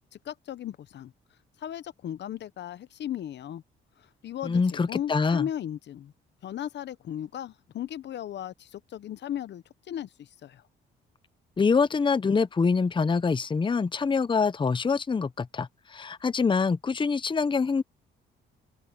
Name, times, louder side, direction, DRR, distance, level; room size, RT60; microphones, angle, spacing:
voice 1, 0.2-1.1 1.6-3.6 4.0-6.1 6.4-10.6, left 10 dB, 60° left, 0.8 m, -36 dB
voice 2, 4.4-5.5 11.6-17.8, left 5 dB, 25° left, 0.8 m, -25 dB
open air
cardioid pair, 90°, 20 cm